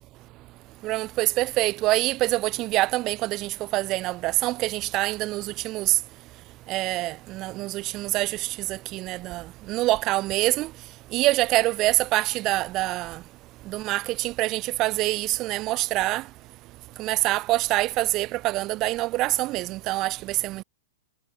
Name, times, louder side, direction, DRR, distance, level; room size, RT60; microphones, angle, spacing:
voice 1, 0.8-5.9 6.7-9.4 9.7-10.7 11.1-13.2 13.7-16.2 17.0-20.6, right 18 dB, 35° right, 0.4 m, -25 dB
hypercardioid pair, 115°, 0 cm